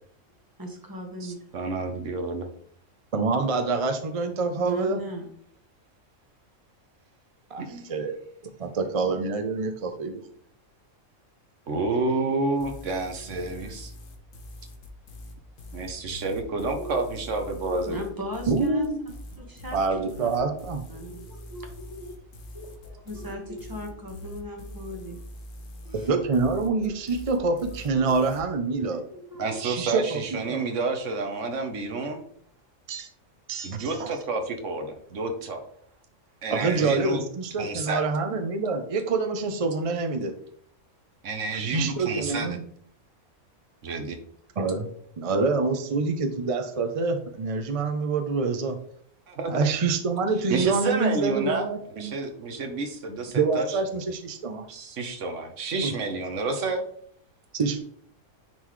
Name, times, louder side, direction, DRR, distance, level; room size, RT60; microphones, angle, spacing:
voice 1, 0.6-1.4 4.6-5.3 16.8-17.1 17.5-18.9 19.4-20.3 20.9-25.2 25.8-26.2 27.4-27.5 28.0-28.1 28.7-29.8, equal, 15° right, 2 dB, 1.3 m, -38 dB
voice 2, 1.2-2.5 7.6-7.9 11.7-13.9 15.7-18.0 29.4-32.2 33.6-35.6 36.4-37.2 37.6-38.0 41.2-42.6 43.8-44.2 49.3-49.7 50.5-53.8 54.7-56.8, right 3 dB, 65° right, 5 dB, 1.2 m, -29 dB
voice 3, 3.1-5.0 7.5-8.2 8.6-10.2 18.5-19.0 19.7-20.8 25.9-29.0 29.6-30.6 32.9-33.1 33.5-34.1 36.5-40.3 41.5-42.6 44.6-44.9 45.2-48.8 49.5-52.1 53.3-54.7 55.8-56.0 57.5-57.8, right 4 dB, 45° right, 6 dB, 0.4 m, -26 dB
sound 1, 12.6-28.4, left 1 dB, 70° left, 1.4 m, -43 dB
9.6 x 3.9 x 3.1 m, 0.62 s
omnidirectional pair, 1.4 m